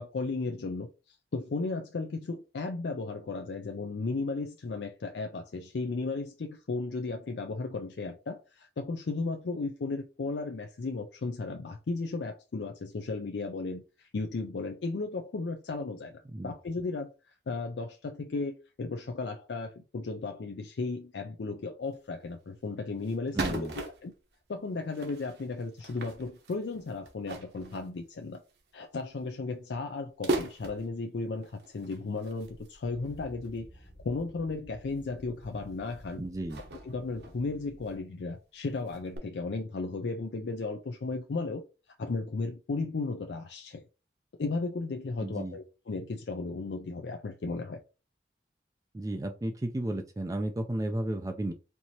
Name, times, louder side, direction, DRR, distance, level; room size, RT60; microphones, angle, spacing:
voice 1, 0.0-17.1 17.5-24.1 24.5-28.4 28.7-36.2 36.8-41.6 42.0-43.8 44.4-47.8, left 3 dB, 70° left, 0.4 m, -35 dB
sound 1, 21.9-22.0 22.4-22.5 23.0-24.3 24.9-28.6 29.0-29.2 29.6-29.7 30.2-31.0 31.4-33.6 34.2-34.3 35.0-35.2 35.5-36.0 36.5-38.0 38.3-38.4 38.7-39.2, right 2 dB, 65° right, 1.0 m, -39 dB
voice 2, 23.3-23.8 36.2-36.6 45.2-45.6 48.9-51.5, right 1 dB, 20° right, 0.3 m, -33 dB
sound 2, 32.8-38.0, equal, 50° left, 1.5 m, -52 dB
4.5 x 2.7 x 2.9 m
head